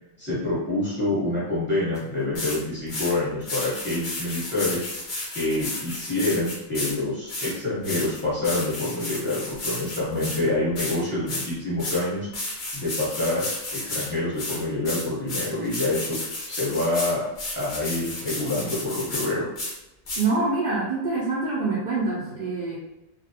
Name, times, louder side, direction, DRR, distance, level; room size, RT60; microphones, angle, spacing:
voice 1, 0.2-5.1 5.3-12.3 12.7-16.2 16.5-17.2 17.6-19.5, left 2 dB, 10° left, -9 dB, 0.8 m, -27 dB
sound 1, 2.0-2.1 2.4-2.6 2.9-3.1 3.4-6.9 7.3-10.4 10.8-11.0 11.3-11.5 11.8-12.0 12.3-14.1 14.4-19.3 19.6-19.7 20.1-20.3, left 2 dB, 55° left, 0.6 m, -32 dB
voice 2, 20.2-22.8, right 3 dB, 75° right, -7 dB, 0.4 m, -25 dB
2.4 x 2.0 x 2.7 m, 0.93 s
omnidirectional pair, 1.4 m